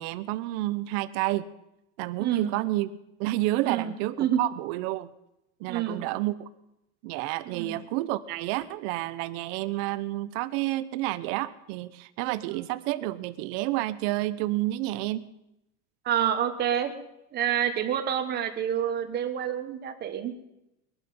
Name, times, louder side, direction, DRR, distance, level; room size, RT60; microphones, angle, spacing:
voice 1, 0.0-1.5 2.0-2.9 3.2-5.1 5.6-6.3 7.0-15.2, right 17 dB, 55° right, 14 dB, 0.9 m, -30 dB
voice 2, 2.2-2.5 3.6-3.9 4.2-4.4 5.7-6.0 7.4-7.8 16.0-16.9 17.3-20.3, right 9 dB, 25° right, 8 dB, 1.2 m, -28 dB
21.5 x 12.0 x 5.5 m, 0.87 s
cardioid pair, 180°, 37 cm